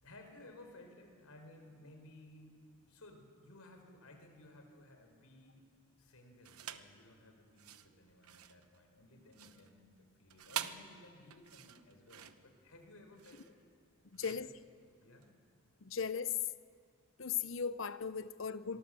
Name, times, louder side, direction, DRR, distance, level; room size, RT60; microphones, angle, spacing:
voice 1, 0.0-2.6 2.8-5.6 6.0-13.6 14.1-14.5 15.0-15.4 15.9-16.0 18.7-18.8, left 1 dB, 85° left, 4.5 m, -58 dB
sound 1, 6.4-7.0 7.5-15.3, right 9 dB, 90° right, 1.0 m, -47 dB
voice 2, 14.1-14.5 15.8-16.4 17.2-18.8, left 6 dB, 60° left, 0.7 m, -37 dB
26.5 x 23.0 x 7.7 m
head